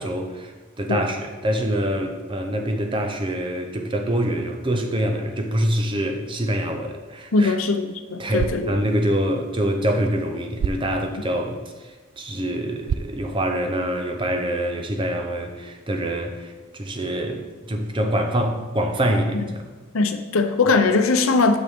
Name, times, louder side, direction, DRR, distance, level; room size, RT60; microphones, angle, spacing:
voice 1, 0.0-7.6 8.2-11.6 12.2-19.6, right 1 dB, 25° right, 5 dB, 0.7 m, -25 dB
voice 2, 7.3-8.8 19.3-19.4 19.9-21.6, left 3 dB, 85° left, 8 dB, 0.7 m, -20 dB
sound 1, 8.2-14.2, right 6 dB, 75° right, 0.3 m, -34 dB
8.4 x 6.4 x 3.6 m, 1.2 s
head